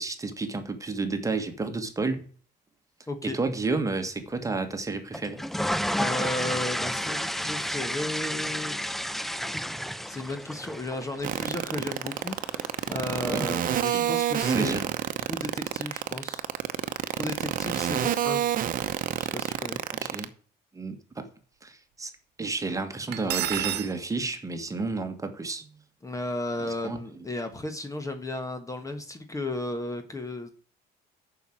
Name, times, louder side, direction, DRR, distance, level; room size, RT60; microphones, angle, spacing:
voice 1, 0.0-2.2 3.2-5.4 11.7-11.9 13.2-14.1 14.4-14.9 17.9-18.2 19.9-20.3 20.7-21.3 21.6-22.1 22.4-25.7 26.6-27.0, right 3 dB, 20° right, 1.6 m, -31 dB
voice 2, 3.1-3.4 6.0-8.8 10.1-14.7 15.2-16.4 17.2-18.4 19.2-19.8 26.0-30.6, left 2 dB, 20° left, 1.3 m, -34 dB
sound 1, 5.1-13.2, equal, ahead, 0.4 m, -32 dB
sound 2, 11.2-20.2, right 11 dB, 55° right, 0.9 m, -27 dB
Cutlery silverware, 23.1-23.9, right 12 dB, 75° right, 1.1 m, -29 dB
7.1 x 6.0 x 7.4 m
cardioid pair, 110°, 17 cm